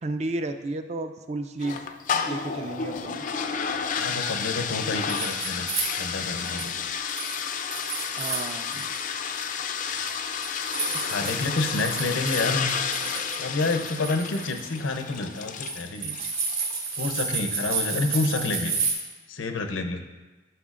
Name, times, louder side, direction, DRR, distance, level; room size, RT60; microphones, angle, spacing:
voice 1, 0.0-1.8 2.3-3.2 8.2-8.9, right 2 dB, 35° right, 8 dB, 0.4 m, -32 dB
sound 1, 1.6-16.9, left 6 dB, 40° left, 0.4 m, -31 dB
voice 2, 4.0-5.7 5.9-6.8 10.9-12.7 13.4-16.2 16.9-18.7 19.3-20.0, left 3 dB, 80° left, 6 dB, 0.7 m, -28 dB
sound 2, 4.7-6.8 7.1-9.0 9.3-18.9, right 5 dB, 85° right, 2.6 m, -32 dB
12.0 x 5.7 x 2.5 m, 1.2 s
head